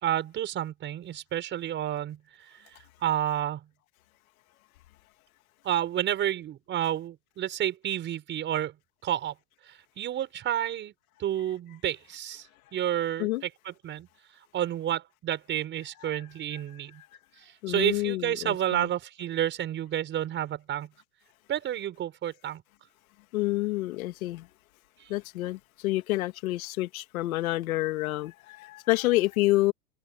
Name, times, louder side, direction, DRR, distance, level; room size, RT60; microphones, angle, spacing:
voice 1, 0.0-2.2 3.0-3.7 5.6-8.8 9.0-9.3 9.7-10.9 11.2-12.5 12.7-14.1 14.5-17.0 17.4-20.9 21.5-22.6 25.0-25.1, right 11 dB, 25° right, 5.7 m, -30 dB
voice 2, 17.6-18.9 23.3-24.5 25.1-29.7, left 18 dB, 60° left, 2.3 m, -28 dB
supercardioid pair, 160°, 47 cm